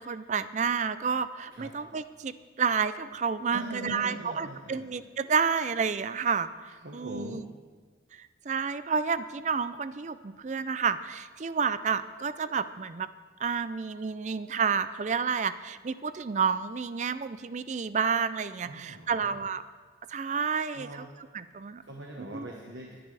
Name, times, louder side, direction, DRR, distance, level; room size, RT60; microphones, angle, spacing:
voice 1, 0.0-6.5 6.9-7.5 8.5-13.1 13.4-19.6 20.1-21.1 21.3-21.8 22.2-22.5, right 6 dB, 40° right, 13 dB, 0.4 m, -30 dB
voice 2, 3.5-4.9 6.8-7.4 18.6-19.4 20.7-21.1 21.9-23.0, equal, 90° right, 0 dB, 1.4 m, -41 dB
21.0 x 10.5 x 3.4 m, 1.5 s
head